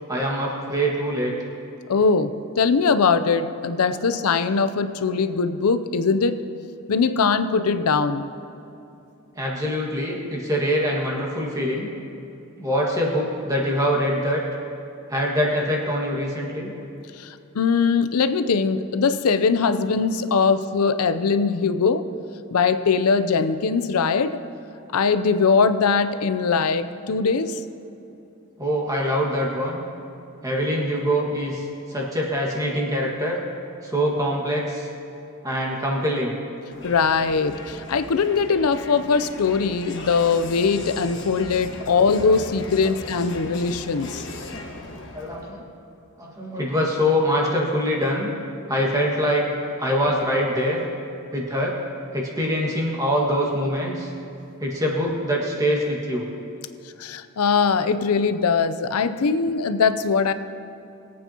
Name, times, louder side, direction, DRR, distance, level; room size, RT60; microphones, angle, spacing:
voice 1, 0.1-1.3 9.4-11.9 12.6-14.4 15.1-16.7 28.6-29.8 30.4-33.4 33.8-34.9 35.4-36.4 41.9-42.0 42.8-42.9 45.1-45.6 46.2-48.3 48.7-49.4 49.8-50.8 51.3-51.7 52.1-54.1 54.6-56.3 59.2-59.3, equal, 15° right, -3 dB, 1.7 m, -24 dB
voice 2, 1.9-6.4 6.9-8.3 17.2-22.0 22.5-24.4 24.9-27.6 36.8-44.2 57.0-60.3, left 5 dB, 85° left, 11 dB, 0.5 m, -21 dB
Crowd, 36.7-45.6, left 2 dB, 55° left, 1.1 m, -38 dB
21.5 x 8.7 x 2.9 m, 2.8 s
head